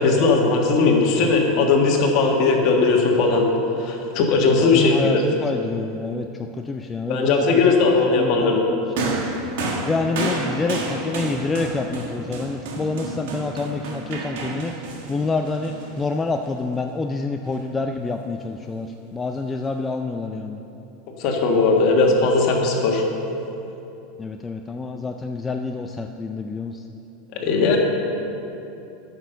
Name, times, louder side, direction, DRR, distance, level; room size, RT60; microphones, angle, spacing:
voice 1, 0.0-3.5 3.8-5.2 7.1-8.6 10.2-10.3 21.2-23.0 27.3-27.8, left 3 dB, 50° left, 0 dB, 1.6 m, -18 dB
voice 2, 4.6-6.3 6.5-9.2 9.8-20.6 24.2-26.8, left 3 dB, 15° left, 4 dB, 0.4 m, -27 dB
sound 1, 9.0-16.5 17.5-17.6, right 2 dB, 75° right, 1.5 m, -30 dB
9.5 x 6.2 x 6.7 m, 2.9 s
supercardioid pair, 135°, 0 cm